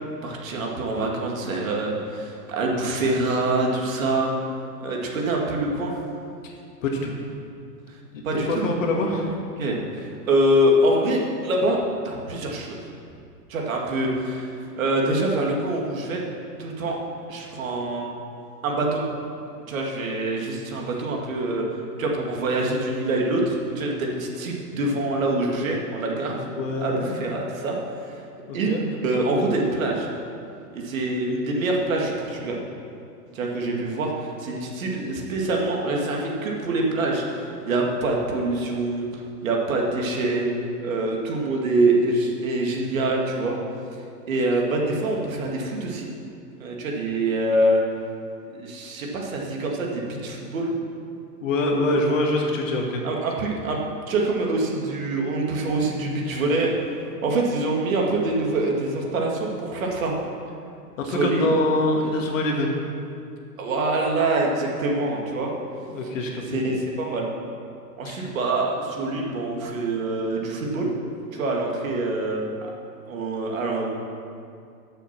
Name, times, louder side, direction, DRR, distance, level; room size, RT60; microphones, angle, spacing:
voice 1, 0.2-4.3 4.8-5.9 8.2-8.8 9.6-11.8 12.0-12.8 13.5-14.5 14.8-16.2 16.6-17.0 17.3-18.1 18.6-19.0 19.7-21.6 22.0-26.4 26.8-27.8 28.0-28.2 28.5-28.7 29.0-30.1 30.7-32.6 33.3-40.5 40.8-43.6 44.3-46.1 46.6-47.8 48.5-50.7 53.0-53.8 54.1-56.7 57.2-60.1 61.0-61.5 63.6-65.5 66.4-67.3 68.0-70.9 71.3-72.7 73.1-73.9, right 2 dB, 55° right, -1 dB, 2.3 m, -25 dB
voice 2, 6.4-7.1 8.1-9.4 26.2-27.2 28.5-28.8 51.4-53.0 61.0-62.8 65.8-66.6 68.0-68.4, left 1 dB, 50° left, 0 dB, 2.0 m, -25 dB
13.5 x 6.9 x 5.9 m, 2.5 s
hypercardioid pair, 170°, 48 cm